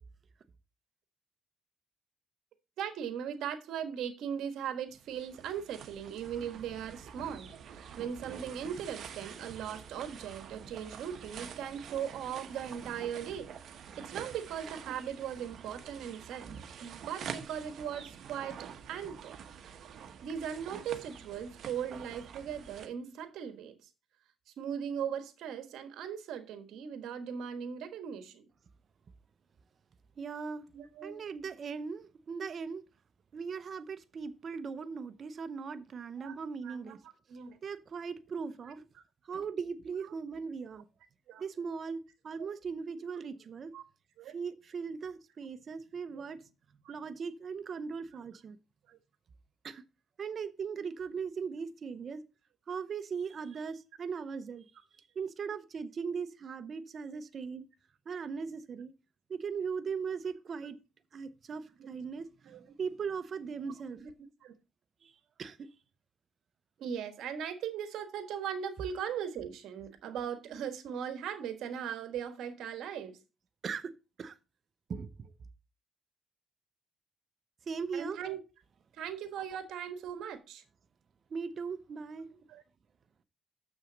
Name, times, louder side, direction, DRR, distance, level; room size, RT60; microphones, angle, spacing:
voice 1, 2.8-18.6 18.9-19.3 20.2-23.8 24.6-28.5 30.7-31.2 36.2-36.3 36.6-37.0 37.3-37.6 41.3-41.4 43.7-43.8 44.2-44.3 46.1-46.2 46.8-46.9 48.9-49.0 62.4-62.6 64.0-64.1 64.4-64.5 66.8-73.2 77.9-78.4 79.0-80.6 82.5-82.6, right 8 dB, 80° right, 1.4 m, -39 dB
sound 1, 4.9-22.9, right 7 dB, 65° right, 1.1 m, -47 dB
voice 2, 30.2-30.7 31.0-32.8 33.3-37.0 37.6-38.8 39.2-40.8 41.4-43.7 44.3-46.5 46.9-48.6 49.6-49.8 50.2-52.2 52.7-54.7 55.0-57.6 58.1-58.9 59.3-60.8 61.1-64.0 65.0-65.1 65.4-65.7 73.6-73.9 74.2-74.3 74.9-75.3 77.7-78.2 81.3-82.3, right 5 dB, 50° right, 0.8 m, -39 dB
7.0 x 6.2 x 5.2 m
cardioid pair, 90°, 0 cm